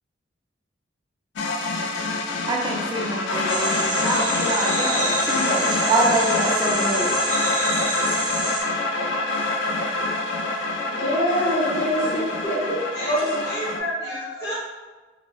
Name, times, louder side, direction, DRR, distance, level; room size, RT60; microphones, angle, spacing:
sound 1, 1.4-13.8, left 2 dB, 90° left, 0.3 m, -25 dB
voice 1, 2.5-7.3, right 2 dB, 25° right, -2 dB, 0.3 m, -26 dB
sound 2, 3.5-8.6, right 2 dB, 45° right, 0.8 m, -28 dB
voice 2, 10.5-12.2 13.1-13.4, equal, 45° left, -5 dB, 0.8 m, -24 dB
voice 3, 12.0-14.5, equal, 65° left, -8 dB, 1.3 m, -31 dB
2.6 x 2.0 x 3.0 m, 1.3 s
head